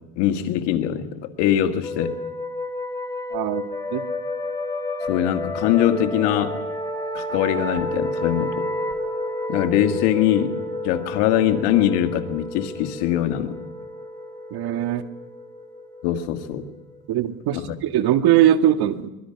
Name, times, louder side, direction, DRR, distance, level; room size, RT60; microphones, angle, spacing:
voice 1, 0.2-2.1 5.0-6.6 7.1-8.7 9.5-10.6 10.8-13.6 16.0-16.7 17.5-17.6, left 11 dB, 85° left, 7 dB, 1.9 m, -22 dB
sound 1, 1.8-17.2, left 1 dB, 10° left, 3.1 m, -31 dB
voice 2, 3.3-4.0 14.5-15.0 17.1-19.1, right 11 dB, 65° right, 10 dB, 1.7 m, -21 dB
25.0 x 21.5 x 5.9 m, 0.90 s
supercardioid pair, 95°, 40 cm